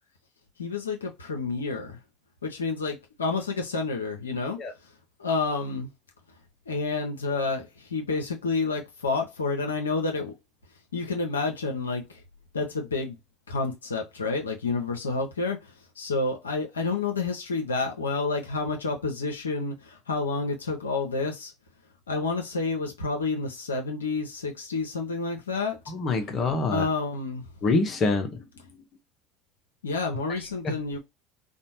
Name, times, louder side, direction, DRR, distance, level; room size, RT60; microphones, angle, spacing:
voice 1, 0.6-2.0 2.4-4.6 5.2-5.9 6.7-10.3 10.9-12.2 12.5-13.2 13.5-21.5 22.1-25.8 26.7-27.4 29.8-31.0, left 3 dB, 90° left, 0.5 m, -29 dB
voice 2, 25.9-26.9 27.6-28.4 30.6-30.7, left 3 dB, 40° left, 0.8 m, -25 dB
2.5 x 2.0 x 2.8 m
hypercardioid pair, 75°, 0 cm